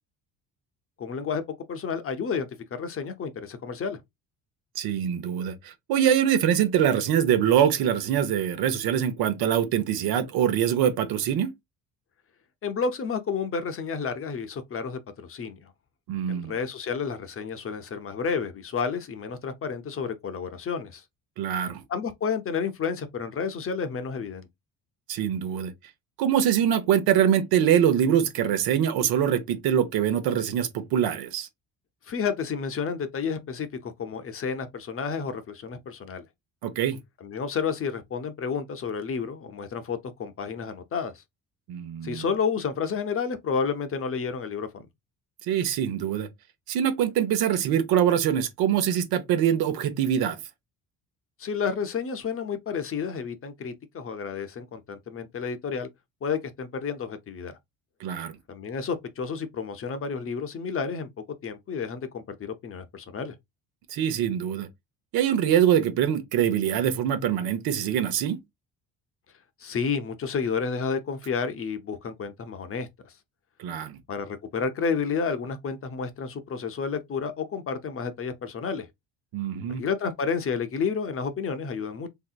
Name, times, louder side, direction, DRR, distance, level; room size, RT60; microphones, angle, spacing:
voice 1, 1.0-1.4 1.7-4.0 12.6-15.7 16.3-21.0 21.9-24.5 32.1-36.2 37.2-41.2 42.0-44.9 51.4-55.9 56.2-57.6 58.5-61.1 61.4-63.3 69.6-73.1 74.1-78.9 79.7-82.1, left 5 dB, 35° left, 0.6 m, -31 dB
voice 2, 4.8-11.5 16.1-16.5 21.4-21.8 25.1-25.7 26.2-31.5 36.6-37.0 41.7-42.2 45.4-46.3 46.7-50.4 58.0-58.4 63.9-64.7 65.1-68.4 73.6-74.0 79.3-79.8, right 9 dB, 75° right, 0.8 m, -24 dB
3.4 x 2.8 x 2.4 m
cardioid pair, 95°, 37 cm